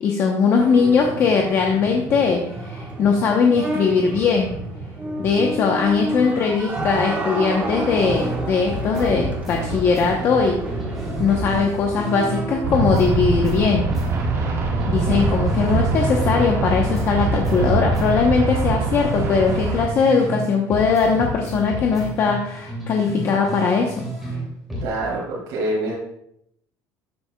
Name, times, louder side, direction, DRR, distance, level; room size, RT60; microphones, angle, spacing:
voice 1, 0.0-4.5 5.2-10.6 11.2-13.9 14.9-24.1, left 5 dB, 35° left, 1 dB, 0.8 m, -20 dB
sound 1, 0.6-12.6, right 2 dB, 20° right, 1.2 m, -30 dB
sound 2, 8.0-8.4 8.7-12.4 12.7-16.4 16.7-20.4 20.7-24.4 24.7-24.9, right 1 dB, ahead, 2.5 m, -31 dB
sound 3, 12.6-19.9, right 3 dB, 35° right, 1.5 m, -23 dB
voice 2, 24.8-25.9, right 1 dB, 65° right, -5 dB, 2.7 m, -26 dB
13.0 x 8.3 x 2.3 m, 0.74 s
cardioid pair, 180°, 8 cm